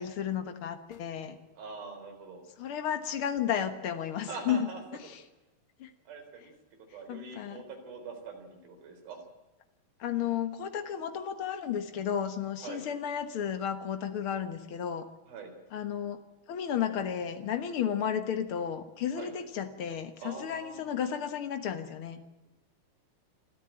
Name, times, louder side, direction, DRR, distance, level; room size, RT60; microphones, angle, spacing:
voice 1, 0.0-1.4 2.6-4.7 5.0-5.2 5.8-5.9 7.1-7.6 10.0-15.1 15.7-16.2 16.5-22.2, left 8 dB, 80° left, 8 dB, 1.2 m, -33 dB
voice 2, 1.6-2.4 4.3-4.8 6.1-6.5 6.9-9.2 12.6-12.8 15.3-15.5 19.1-19.3 20.2-20.9, right 4 dB, 70° right, 5 dB, 5.7 m, -43 dB
26.0 x 14.0 x 8.9 m, 1.1 s
omnidirectional pair, 4.4 m